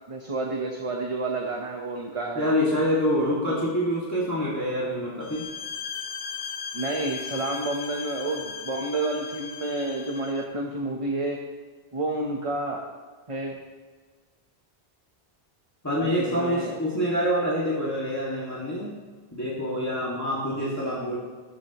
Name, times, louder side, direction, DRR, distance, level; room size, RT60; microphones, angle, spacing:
voice 1, 0.1-2.5 6.7-11.4 11.9-12.8 13.3-13.5 16.0-16.7, right 2 dB, 35° right, 1 dB, 1.1 m, -30 dB
voice 2, 2.3-5.5 15.8-18.9 19.3-21.2, equal, 15° left, -7 dB, 2.2 m, -26 dB
sound 1, 5.2-10.5, left 6 dB, 75° left, 1.1 m, -37 dB
14.5 x 14.0 x 3.1 m, 1.4 s
omnidirectional pair, 1.0 m